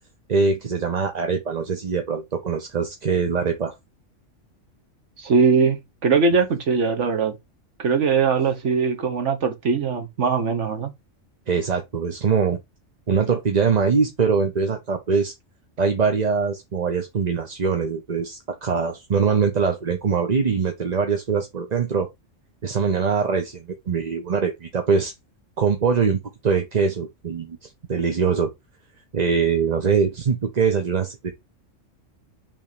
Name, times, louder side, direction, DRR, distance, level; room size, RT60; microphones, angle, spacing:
voice 1, 0.3-3.7 11.5-12.6 13.1-15.3 15.8-22.1 22.6-25.1 25.6-28.5 29.1-31.3, right 5 dB, 35° right, 0.9 m, -23 dB
voice 2, 5.2-7.4 7.8-10.9, right 5 dB, 70° right, 1.3 m, -21 dB
5.6 x 3.6 x 5.0 m
omnidirectional pair, 1.3 m